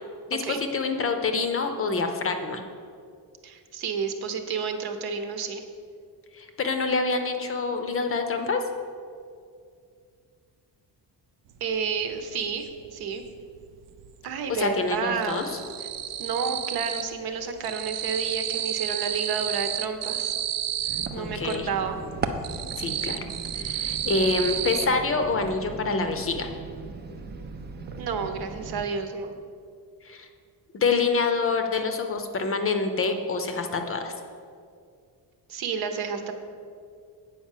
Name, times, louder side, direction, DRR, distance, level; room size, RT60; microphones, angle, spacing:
voice 1, 0.3-2.6 6.3-8.6 14.5-15.5 21.2-21.7 22.8-23.2 23.5-26.5 30.0-30.3 30.7-34.1, left 4 dB, 35° left, 6 dB, 0.6 m, -26 dB
voice 2, 3.4-5.6 11.6-13.2 14.2-15.4 16.2-20.3 21.1-22.0 27.9-29.4 35.5-36.3, right 5 dB, 65° right, 7 dB, 0.9 m, -30 dB
sound 1, 11.6-11.7 12.0-13.3 13.6-14.3 14.5-17.2 17.4-21.6 22.0-24.9, right 11 dB, 85° right, 0.6 m, -31 dB
sound 2, 20.9-28.9, right 4 dB, 25° right, 0.4 m, -38 dB
8.6 x 5.1 x 7.3 m, 2.3 s
cardioid pair, 180°, 40 cm